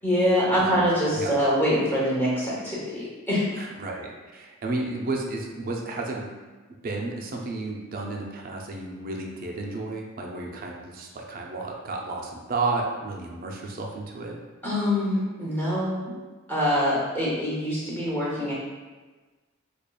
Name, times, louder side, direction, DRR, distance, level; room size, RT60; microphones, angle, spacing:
voice 1, 0.0-3.5 14.6-16.1 16.5-18.5, equal, 10° left, -7 dB, 0.7 m, -24 dB
voice 2, 0.6-1.3 3.6-6.3 6.8-14.4, right 3 dB, 45° right, 0 dB, 0.4 m, -32 dB
4.9 x 2.4 x 2.3 m, 1.3 s
head